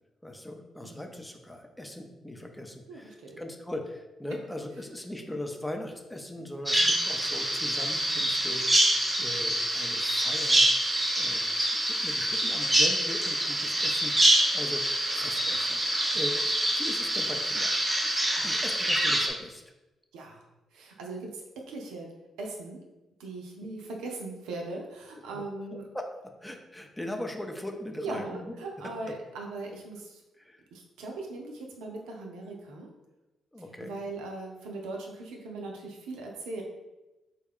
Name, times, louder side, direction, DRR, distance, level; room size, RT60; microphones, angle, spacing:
voice 1, 0.2-11.4 11.7-14.8 15.1-16.4 16.8-17.7 18.4-19.6 25.3-25.4 25.9-26.1 26.4-28.5 28.8-28.9 30.4-30.6 33.5-34.0, left 1 dB, 10° left, 3 dB, 0.5 m, -40 dB
voice 2, 0.8-1.1 2.9-3.4 6.7-7.1 18.1-18.6 20.1-20.4 20.7-22.1 22.4-22.8 23.2-25.8 28.0-30.2 30.7-32.9 33.8-36.6, right 2 dB, 75° right, 0 dB, 0.5 m, -39 dB
Bird vocalization bird call bird song, 6.7-19.3, right 1 dB, 20° right, 0.7 m, -26 dB
3.3 x 2.3 x 3.5 m, 1.0 s
hypercardioid pair, 45°, 0 cm